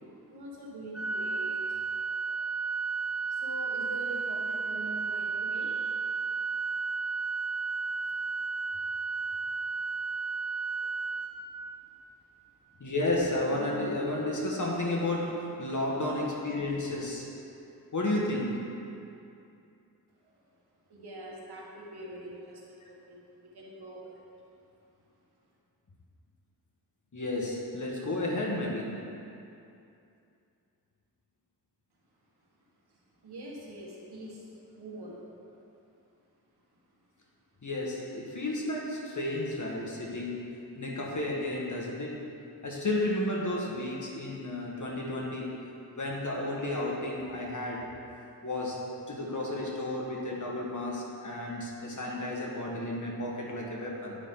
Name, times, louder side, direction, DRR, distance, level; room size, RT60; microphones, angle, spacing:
voice 1, 0.3-1.8 2.1-2.5 3.3-5.7 13.5-13.9 20.2-20.3 20.9-24.2 33.2-34.5 34.7-35.3, right 1 dB, 80° right, -3 dB, 1.6 m, -44 dB
Organ, 0.9-12.0, right 4 dB, ahead, 0.7 m, -33 dB
voice 2, 12.8-17.2 17.9-18.6 27.1-28.9 37.6-40.5 40.7-42.2 42.6-45.5 45.9-47.8 48.4-54.2, left 1 dB, 50° left, -2 dB, 1.6 m, -32 dB
9.8 x 5.8 x 3.8 m, 2.6 s
cardioid pair, 60°, 38 cm